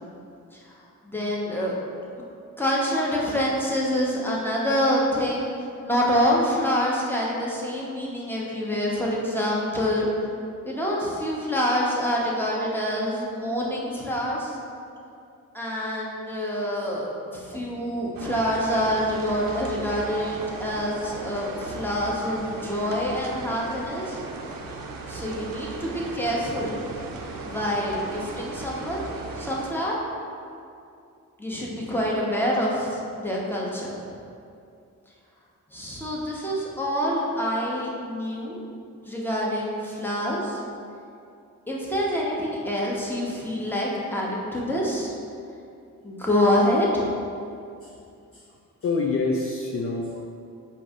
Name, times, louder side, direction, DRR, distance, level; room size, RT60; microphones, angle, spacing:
voice 1, 1.0-1.7 2.6-5.5 5.8-10.1 10.6-14.6 15.5-24.2 25.1-26.8 27.4-29.1 29.4-29.9 31.4-34.0 35.7-38.6 39.0-40.6 41.7-45.1 46.0-47.0, equal, 5° left, -4 dB, 1.0 m, -26 dB
sound 1, 18.1-29.7, right 3 dB, 70° right, 0.6 m, -37 dB
voice 2, 48.8-50.4, left 3 dB, 40° left, -2 dB, 0.5 m, -27 dB
4.6 x 2.7 x 3.6 m, 2.5 s
cardioid pair, 45°, 35 cm